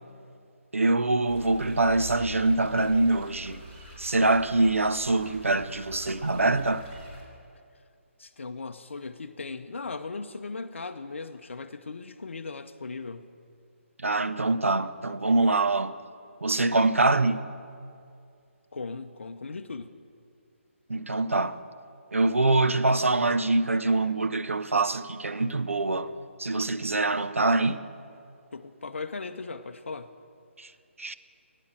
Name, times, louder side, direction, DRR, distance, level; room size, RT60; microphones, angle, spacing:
voice 1, 0.7-3.6 4.0-6.9 14.0-15.9 16.4-17.5 20.9-21.6 22.1-26.1 26.4-27.8 30.6-30.7 31.0-31.1, right 2 dB, 75° right, 0.6 m, -24 dB
sound 1, 1.3-7.2, equal, 30° right, 3.9 m, -44 dB
voice 2, 8.2-13.3 18.7-19.9 28.5-30.1, left 4 dB, 65° left, 0.6 m, -38 dB
12.0 x 9.1 x 7.4 m
figure-of-eight pair, 140°, 7 cm